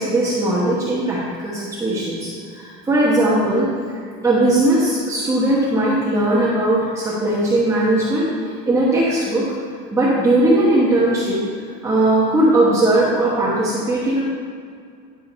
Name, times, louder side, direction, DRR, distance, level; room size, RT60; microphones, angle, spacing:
voice 1, 0.0-3.7 4.2-8.3 8.7-9.4 9.9-11.4 11.8-14.2, right 1 dB, 15° right, -7 dB, 1.2 m, -18 dB
10.5 x 6.2 x 4.3 m, 2.2 s
cardioid pair, 170°, 21 cm